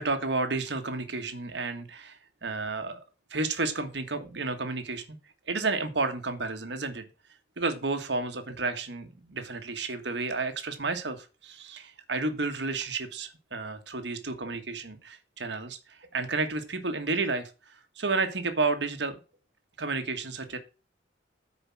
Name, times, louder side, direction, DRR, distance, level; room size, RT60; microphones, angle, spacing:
voice 1, 0.0-3.0 3.3-5.0 5.5-7.0 7.6-17.5 18.0-19.2 19.8-20.6, right 3 dB, 65° right, 7 dB, 1.5 m, -31 dB
8.5 x 4.9 x 7.1 m, 0.32 s
head